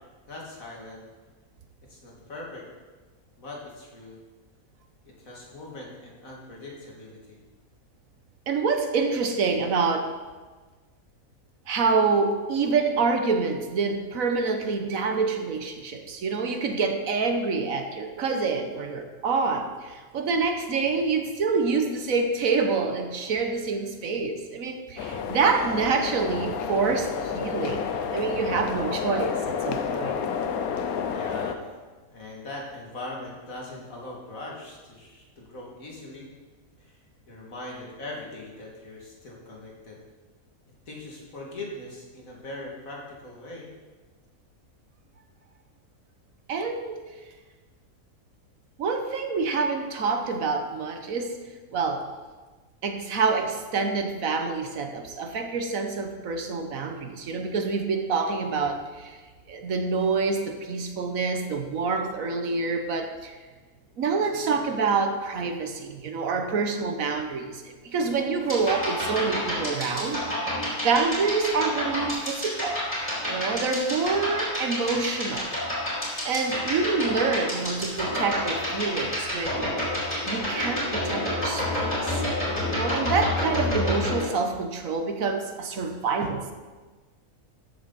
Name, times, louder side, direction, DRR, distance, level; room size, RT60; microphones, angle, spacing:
voice 1, 0.3-1.1 1.9-2.7 3.4-4.2 5.0-7.4 31.1-31.6 32.1-36.3 36.8-37.0 37.3-40.0 40.9-43.7, left 2 dB, 65° left, -2 dB, 2.6 m, -41 dB
voice 2, 8.5-10.1 11.7-27.9 28.1-30.2 46.5-47.1 48.8-51.4 51.7-52.1 52.8-59.2 59.5-63.3 64.0-70.2 70.8-72.8 73.3-75.5 76.2-79.7 80.3-82.2 82.7-86.5, right 4 dB, 70° right, 6 dB, 1.4 m, -27 dB
sound 1, 25.0-31.6, left 6 dB, 80° left, 1.2 m, -30 dB
sound 2, 68.4-84.2, left 1 dB, 10° left, 3.9 m, -29 dB
13.5 x 8.1 x 4.1 m, 1.3 s
omnidirectional pair, 1.5 m